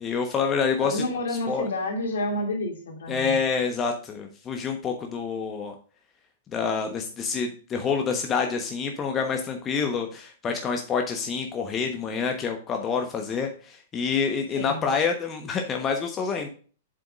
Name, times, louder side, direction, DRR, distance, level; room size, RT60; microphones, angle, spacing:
voice 1, 0.0-1.0 1.5-1.6 3.1-5.7 6.5-16.5, left 5 dB, 25° left, 4 dB, 1.2 m, -27 dB
voice 2, 0.8-3.3 14.6-14.9, left 2 dB, 65° left, 2 dB, 2.6 m, -29 dB
7.8 x 7.7 x 2.5 m, 0.39 s
figure-of-eight pair, 100°, 0 cm